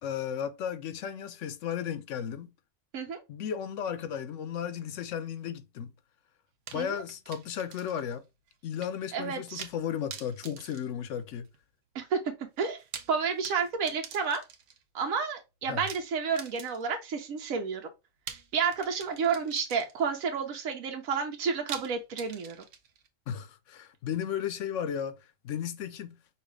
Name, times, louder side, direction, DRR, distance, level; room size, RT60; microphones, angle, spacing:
voice 1, 0.0-2.5 3.3-5.9 6.7-8.2 8.6-11.5 15.7-15.9 23.3-25.2 25.4-26.2, left 8 dB, 70° left, 0.9 m, -34 dB
sound 1, 6.7-8.2 8.5-8.6 9.6-9.8 10.1-11.6 12.7-14.8 15.9-17.1 18.3-20.2 21.7-23.1, right 7 dB, 70° right, 1.0 m, -45 dB
voice 2, 9.1-9.7 11.9-12.2 12.6-12.8 13.1-14.4 14.9-17.8 18.5-22.6, right 6 dB, 90° right, 1.2 m, -30 dB
5.6 x 2.4 x 3.3 m
omnidirectional pair, 1.4 m